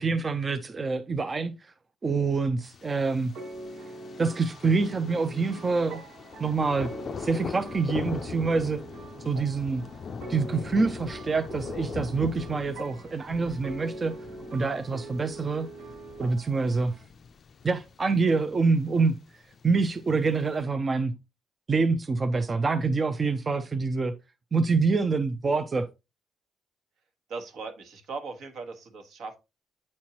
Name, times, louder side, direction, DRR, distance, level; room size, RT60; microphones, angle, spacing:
voice 1, 0.0-1.7 2.0-3.3 4.2-6.0 6.4-8.8 9.2-9.8 10.3-14.1 14.5-15.7 16.2-16.9 17.6-19.2 19.6-21.2 21.7-24.1 24.5-25.9, right 4 dB, 30° right, 0.4 m, -26 dB
Thunder, 2.6-20.6, left 6 dB, 45° left, 0.4 m, -42 dB
sound 1, 3.3-17.1, right 2 dB, 90° right, 1.2 m, -43 dB
voice 2, 27.3-29.4, right 4 dB, 70° right, 1.3 m, -38 dB
8.4 x 4.3 x 2.9 m
cardioid pair, 125°, 0 cm